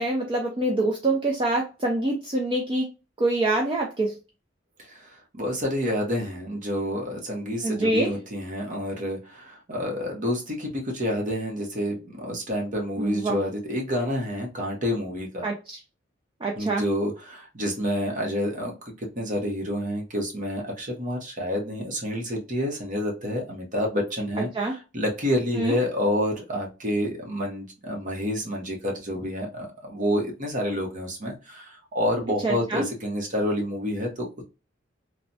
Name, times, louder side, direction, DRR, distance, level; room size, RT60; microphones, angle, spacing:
voice 1, 0.0-2.9 3.2-4.2 7.6-8.1 13.0-13.4 15.4-15.8 16.4-16.8 24.5-24.7 25.5-25.8 32.4-32.8, right 2 dB, 25° right, 0 dB, 0.4 m, -25 dB
voice 2, 4.9-15.4 16.5-34.4, equal, 45° right, 0 dB, 1.0 m, -28 dB
3.2 x 2.1 x 2.7 m, 0.31 s
head